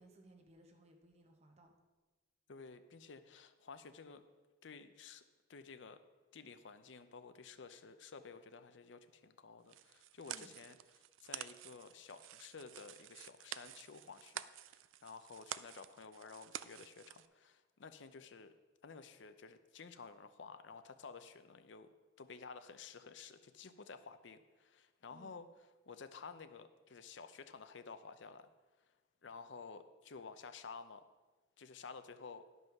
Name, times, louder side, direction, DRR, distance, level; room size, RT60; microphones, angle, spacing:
voice 1, 0.0-1.7 10.3-10.5 25.1-25.4, right 1 dB, 35° right, 4 dB, 1.0 m, -62 dB
voice 2, 2.5-4.3 4.6-5.2 5.5-6.0 6.3-18.5 18.8-25.5 25.9-28.5 28.8-28.9 29.2-31.0 31.6-32.5, left 5 dB, 70° left, 10 dB, 0.6 m, -53 dB
sound 1, 9.7-17.3, right 11 dB, 90° right, 0.4 m, -50 dB
11.0 x 5.4 x 5.8 m, 1.2 s
head